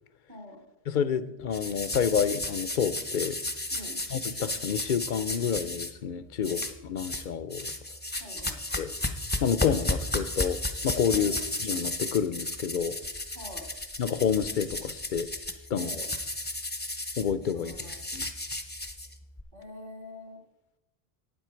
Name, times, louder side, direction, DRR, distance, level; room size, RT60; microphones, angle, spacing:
voice 1, 0.3-0.6 3.7-4.0 6.4-6.6 8.2-8.6 11.1-11.4 13.3-13.7 15.7-16.1 17.5-18.0 19.5-20.4, left 1 dB, 50° right, 0 dB, 2.2 m, -45 dB
voice 2, 0.9-3.4 4.1-7.7 8.7-8.9 9.4-11.3 11.6-13.0 14.0-15.3 15.7-16.0 17.2-17.9 18.1-18.3, left 7 dB, 55° left, 14 dB, 0.7 m, -29 dB
sound 1, 1.5-5.9 6.4-7.3 7.5-19.4, left 2 dB, 10° left, 0.8 m, -34 dB
12.5 x 9.1 x 4.5 m, 0.92 s
omnidirectional pair, 1.0 m